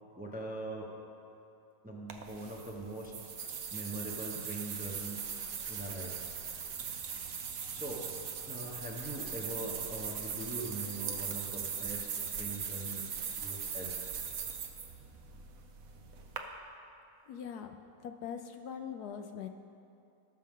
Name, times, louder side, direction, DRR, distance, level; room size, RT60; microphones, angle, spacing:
voice 1, 0.2-0.9 1.8-3.1 3.7-5.2 5.7-6.1 7.7-8.0 8.5-13.1 13.4-13.9, right 1 dB, 5° right, -2 dB, 0.8 m, -42 dB
sound 1, 2.1-16.4, right 7 dB, 60° right, 1.1 m, -40 dB
voice 2, 17.3-19.5, left 7 dB, 75° left, 6 dB, 1.1 m, -42 dB
17.5 x 6.6 x 3.7 m, 2.6 s
omnidirectional pair, 1.8 m